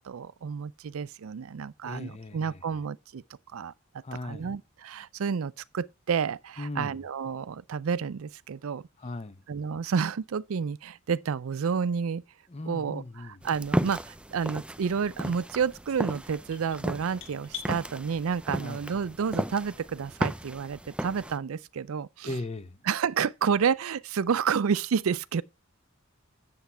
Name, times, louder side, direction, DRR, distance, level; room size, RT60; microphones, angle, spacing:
voice 1, 0.0-3.2 3.5-3.7 4.2-8.8 9.5-12.2 12.7-13.0 13.4-22.3 22.9-25.4, right 6 dB, 85° right, 0.4 m, -30 dB
voice 2, 1.8-2.6 4.0-4.5 6.6-7.0 9.0-9.4 12.5-13.4 18.6-18.9 22.2-22.8, left 2 dB, 30° left, 0.8 m, -38 dB
sound 1, 13.4-21.4, equal, 5° right, 0.5 m, -34 dB
sound 2, 15.9-17.7, left 10 dB, 65° left, 2.7 m, -43 dB
8.2 x 7.4 x 5.5 m
head